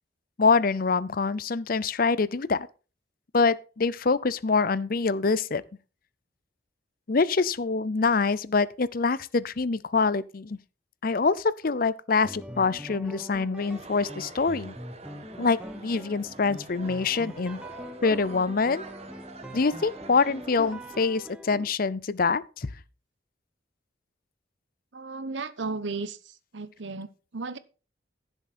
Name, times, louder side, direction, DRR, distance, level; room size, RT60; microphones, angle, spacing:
voice 1, 0.4-2.7 3.3-5.6 7.1-10.6 11.0-14.7 15.4-17.6 18.0-18.8 19.5-22.7, left 4 dB, 50° left, 0.6 m, -25 dB
sound 1, 12.2-21.6, equal, 5° right, 1.1 m, -43 dB
sound 2, 13.6-21.1, right 2 dB, 35° right, 1.3 m, -46 dB
voice 2, 24.9-26.2 26.5-27.6, right 3 dB, 70° right, 1.0 m, -34 dB
15.5 x 7.3 x 4.3 m
head